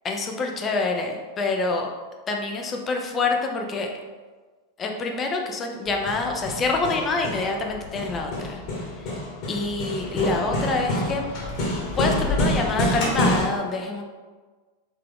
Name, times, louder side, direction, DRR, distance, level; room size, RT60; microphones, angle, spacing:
voice 1, 0.0-1.9 2.3-3.9 4.8-8.6 9.5-11.3 12.0-14.0, left 3 dB, 25° left, 2 dB, 0.6 m, -26 dB
Hammer, 5.9-13.4, left 1 dB, 40° left, 1.3 m, -27 dB
4.1 x 3.2 x 3.5 m, 1.4 s
figure-of-eight pair, 90°, 0 cm